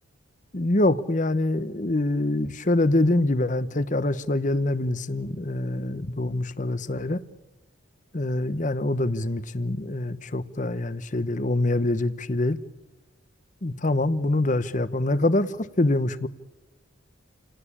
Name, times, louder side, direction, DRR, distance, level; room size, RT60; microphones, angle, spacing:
voice 1, 0.5-7.2 8.1-12.6 13.6-16.3, left 2 dB, 40° left, 1.0 m, -25 dB
29.5 x 18.5 x 8.7 m
head